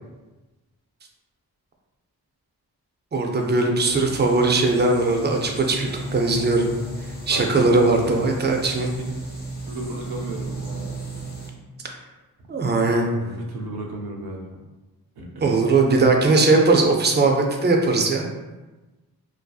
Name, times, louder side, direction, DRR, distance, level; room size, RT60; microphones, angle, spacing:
voice 1, 3.1-6.7 7.3-8.9 12.5-13.1 15.4-18.3, right 3 dB, 30° right, 1 dB, 0.4 m, -19 dB
sound 1, 3.9-11.5, right 1 dB, 25° left, 0.7 m, -35 dB
voice 2, 7.9-8.3 9.0-9.1 9.7-10.5 13.1-14.4 15.2-15.5, right 1 dB, 75° right, -1 dB, 0.6 m, -34 dB
2.6 x 2.3 x 2.3 m, 1.2 s
wide cardioid pair, 75°, 38 cm